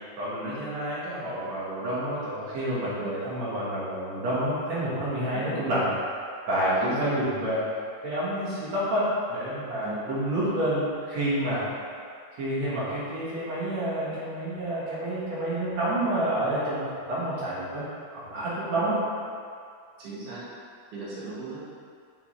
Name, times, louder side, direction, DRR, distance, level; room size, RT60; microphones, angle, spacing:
voice 1, 0.2-5.9 6.5-7.7 8.0-11.6 12.4-17.8 18.1-19.0, right 1 dB, 60° right, -9 dB, 2.9 m, -28 dB
voice 2, 20.0-20.4 20.9-21.6, right 2 dB, 80° right, -8 dB, 3.1 m, -38 dB
7.0 x 5.5 x 3.3 m, 2.3 s
omnidirectional pair, 3.5 m